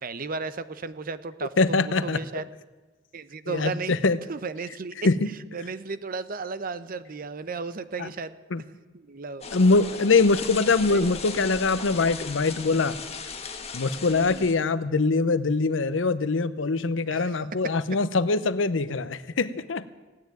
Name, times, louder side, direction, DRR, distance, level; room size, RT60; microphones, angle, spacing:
voice 1, 0.0-1.5 1.8-2.4 3.1-3.9 4.3-5.1 5.5-8.4 9.0-9.5 10.9-11.1 14.1-14.5 17.1-17.3, right 4 dB, 50° right, 14 dB, 0.7 m, -34 dB
voice 2, 1.6-2.2 3.5-4.2 5.0-5.3 8.0-8.1 8.5-8.6 9.5-13.0 13.7-19.8, left 3 dB, 90° left, 15 dB, 0.7 m, -23 dB
sound 1, 9.4-14.5, left 5 dB, 35° left, 1.5 m, -37 dB
16.5 x 9.5 x 9.1 m, 1.2 s
head